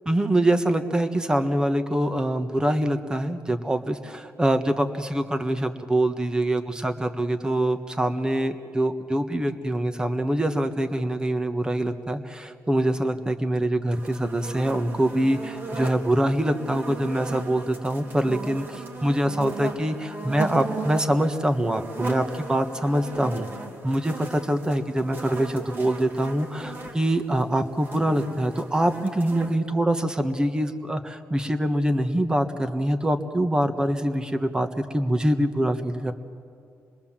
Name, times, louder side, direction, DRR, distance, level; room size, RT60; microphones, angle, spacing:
voice 1, 0.1-23.5 23.8-36.1, right 1 dB, 15° right, 8 dB, 1.4 m, -24 dB
sound 1, 13.9-29.5, right 3 dB, 40° right, 2.4 m, -37 dB
27.0 x 21.5 x 7.5 m, 2.4 s
cardioid pair, 120°, 6 cm